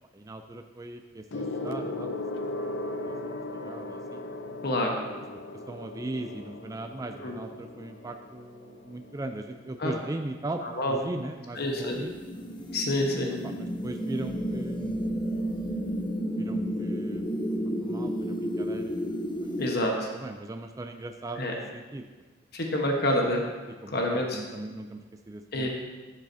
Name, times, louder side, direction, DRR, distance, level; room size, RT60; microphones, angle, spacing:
voice 1, 0.1-2.1 2.7-3.1 3.5-4.2 5.3-5.4 5.7-10.6 10.9-12.1 13.4-15.2 16.3-17.2 17.6-19.0 19.4-19.9 20.1-22.1 23.8-25.7, right 2 dB, 20° right, 6 dB, 0.3 m, -39 dB
Gong, 1.3-11.1 12.0-12.3, left 2 dB, 80° left, 0.6 m, -38 dB
voice 2, 4.6-5.0 7.2-7.3 9.8-9.9 10.6-11.0 11.5-12.0 12.7-13.3 19.6-20.1 21.4-21.5 22.5-23.4 23.9-24.4 25.5-25.7, left 1 dB, 55° left, 0 dB, 1.2 m, -27 dB
sound 1, 11.6-19.7, equal, 25° left, 0.6 m, -32 dB
11.5 x 7.3 x 2.7 m, 1.3 s
head